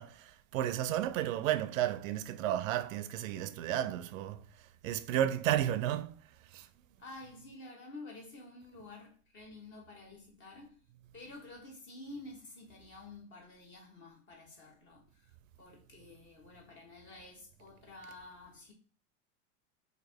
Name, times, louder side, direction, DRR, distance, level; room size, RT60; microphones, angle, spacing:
voice 1, 0.0-4.4 4.8-6.1 6.5-6.7, right 12 dB, 80° right, 0.5 m, -32 dB
voice 2, 7.0-10.8 11.1-18.7, left 2 dB, 30° left, 1.3 m, -50 dB
3.0 x 2.8 x 4.2 m
supercardioid pair, 130°, 39 cm